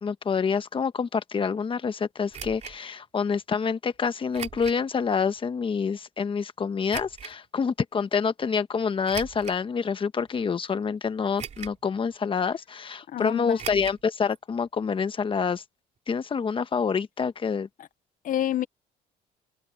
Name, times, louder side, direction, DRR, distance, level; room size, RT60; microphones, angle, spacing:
voice 1, 0.0-15.6 16.1-17.7, left 6 dB, 30° left, 1.2 m, -27 dB
sound 1, 2.3-2.8 4.3-4.8 5.4-5.5 6.9-7.3 9.0-9.6 10.3-10.4 11.4-11.9 12.1-12.2 13.6-14.0 14.3-14.4 14.7-14.8, right 7 dB, 40° right, 3.0 m, -38 dB
voice 2, 13.1-13.8 18.2-18.7, left 11 dB, 55° left, 0.9 m, -28 dB
open air
cardioid pair, 110°, 17 cm